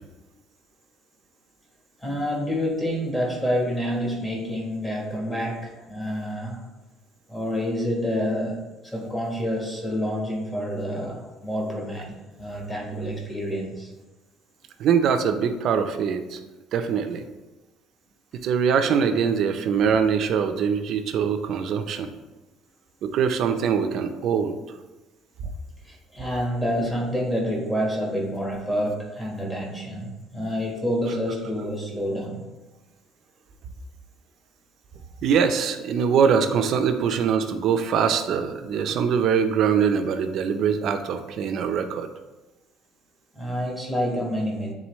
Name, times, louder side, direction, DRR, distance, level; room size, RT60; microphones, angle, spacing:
voice 1, 2.0-6.6 7.3-13.9 25.8-32.5 43.3-44.7, equal, 10° left, -2 dB, 1.2 m, -28 dB
voice 2, 14.8-16.4 16.7-17.2 18.3-22.1 23.0-24.6 35.2-42.1, right 7 dB, 50° right, 7 dB, 0.5 m, -23 dB
8.8 x 3.8 x 3.1 m, 1.1 s
cardioid pair, 165°, 0 cm